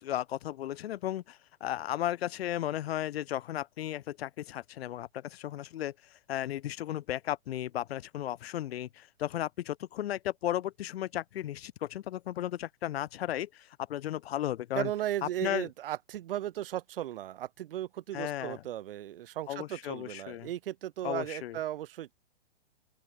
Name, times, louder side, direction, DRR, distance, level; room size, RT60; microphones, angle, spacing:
voice 1, 0.0-14.9 15.2-15.7 18.1-18.6 19.5-20.5 21.0-21.6, left 12 dB, 65° left, 0.6 m, -35 dB
voice 2, 14.7-22.1, right 12 dB, 55° right, 0.7 m, -36 dB
open air
hypercardioid pair, 165°, 34 cm